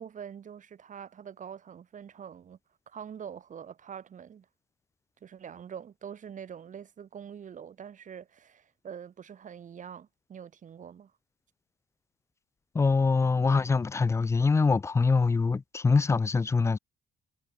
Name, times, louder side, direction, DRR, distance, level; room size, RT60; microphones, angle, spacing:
voice 1, 0.0-2.6 2.9-4.5 5.2-11.1, right 8 dB, 40° right, 5.7 m, -44 dB
voice 2, 12.7-16.8, left 4 dB, 15° left, 0.4 m, -24 dB
cardioid pair, 155°, 20 cm